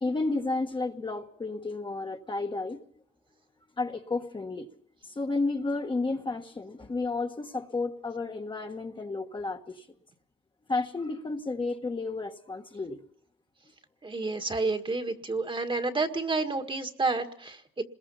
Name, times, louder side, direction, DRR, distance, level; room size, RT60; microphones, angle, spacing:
voice 1, 0.0-2.8 3.8-4.7 5.0-9.9 10.7-13.0, left 3 dB, 25° left, 1.6 m, -32 dB
voice 2, 14.0-17.8, right 3 dB, 25° right, 1.8 m, -30 dB
27.0 x 21.5 x 5.7 m
cardioid pair, 90°, 20 cm